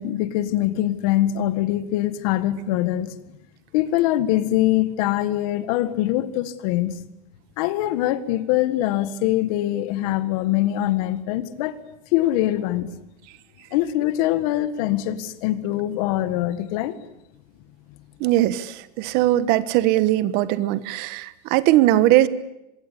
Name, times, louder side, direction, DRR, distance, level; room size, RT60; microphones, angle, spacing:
voice 1, 0.0-3.2 3.7-7.0 7.6-11.8 12.1-12.9 13.7-17.0, left 14 dB, 60° left, 1.7 m, -23 dB
voice 2, 18.2-22.3, right 15 dB, 50° right, 1.3 m, -20 dB
24.5 x 22.0 x 8.4 m
supercardioid pair, 160°, 21 cm